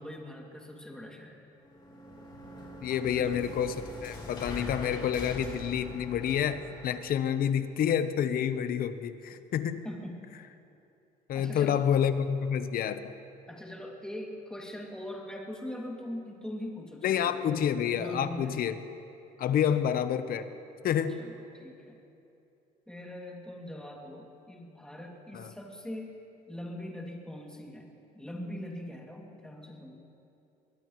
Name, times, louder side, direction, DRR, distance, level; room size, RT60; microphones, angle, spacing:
voice 1, 0.0-1.5 3.0-3.5 9.8-10.3 11.3-11.9 13.5-18.6 19.7-19.8 21.1-22.0 22.9-26.2 26.5-30.0, left 1 dB, 5° left, -1 dB, 2.5 m, -42 dB
sound 1, 1.6-7.1, left 1 dB, 30° left, 3.5 m, -42 dB
voice 2, 2.8-3.7 4.0-9.8 11.3-13.1 17.0-18.8 19.4-20.4 20.8-21.2 25.3-25.5, left 9 dB, 60° left, 11 dB, 0.9 m, -28 dB
22.5 x 20.0 x 3.1 m, 2.7 s
cardioid pair, 110°, 17 cm